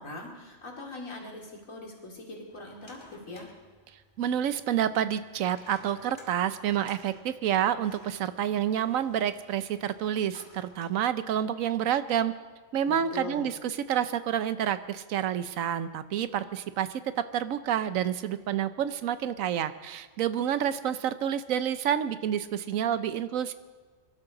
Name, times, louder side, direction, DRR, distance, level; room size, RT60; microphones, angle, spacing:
voice 1, 0.0-3.5 12.9-13.5, left 2 dB, 85° left, -1 dB, 3.1 m, -41 dB
sound 1, 2.5-11.0, left 1 dB, 20° left, 2.4 m, -56 dB
voice 2, 4.2-12.3 12.7-23.5, right 9 dB, 85° right, 13 dB, 1.1 m, -29 dB
24.5 x 12.5 x 3.9 m, 1.4 s
omnidirectional pair, 1.4 m